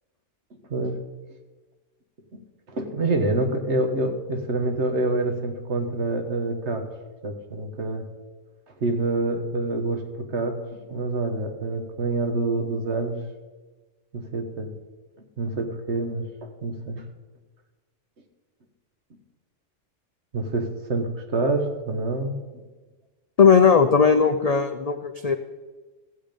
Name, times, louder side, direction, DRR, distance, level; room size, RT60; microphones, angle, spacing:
voice 1, 2.7-6.8 7.2-8.1 8.8-10.6 10.9-13.2 14.1-14.7 15.4-17.0 20.3-22.3, right 2 dB, 60° right, 4 dB, 1.6 m, -26 dB
voice 2, 23.4-25.4, left 6 dB, 55° left, 7 dB, 0.4 m, -17 dB
15.5 x 7.5 x 5.2 m, 1.3 s
omnidirectional pair, 1.3 m